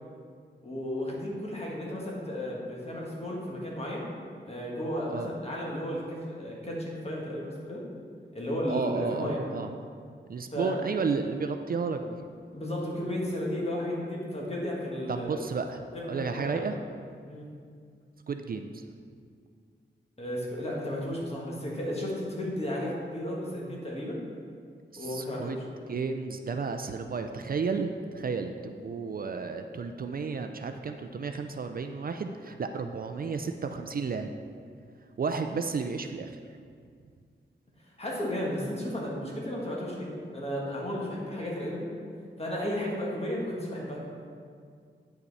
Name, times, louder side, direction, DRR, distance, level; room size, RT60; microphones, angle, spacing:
voice 1, 0.6-4.1 4.4-7.8 8.3-9.4 10.5-10.8 12.5-15.4 15.9-16.7 17.3-17.5 20.2-24.2 25.0-25.5 38.0-41.9 42.4-44.1, left 1 dB, 30° left, -4 dB, 1.7 m, -34 dB
voice 2, 8.7-9.7 10.3-12.2 15.1-16.8 18.3-18.8 24.9-25.6 25.9-34.3 35.2-36.4, right 5 dB, 50° right, 6 dB, 0.4 m, -32 dB
9.1 x 5.7 x 4.1 m, 2.2 s
wide cardioid pair, 130°, 19 cm